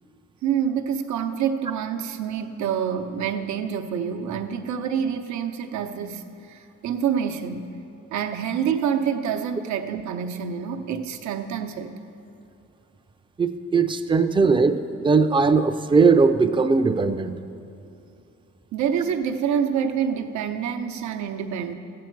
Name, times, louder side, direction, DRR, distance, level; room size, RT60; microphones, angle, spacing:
voice 1, 0.4-7.7 8.1-12.0 18.7-21.7, right 8 dB, 70° right, 5 dB, 0.8 m, -27 dB
voice 2, 13.4-14.8 15.0-17.3, right 4 dB, 15° right, 8 dB, 0.5 m, -19 dB
14.0 x 8.5 x 4.6 m, 2.7 s
cardioid pair, 90°, 30 cm